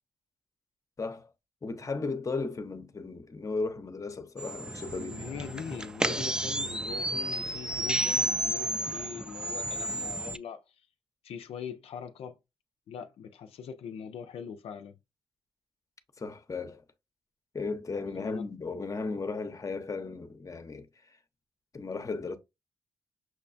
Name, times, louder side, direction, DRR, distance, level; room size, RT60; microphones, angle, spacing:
voice 1, 1.0-1.3 1.6-5.2 16.2-16.8 17.5-20.9 21.7-22.4, left 3 dB, 35° left, 0.6 m, -35 dB
sound 1, 4.4-10.4, right 1 dB, 10° right, 0.3 m, -32 dB
voice 2, 4.9-10.9 11.2-12.4 12.9-15.0 18.1-18.5, left 7 dB, 85° left, 0.4 m, -42 dB
6.0 x 2.2 x 2.5 m
cardioid pair, 65°, 10 cm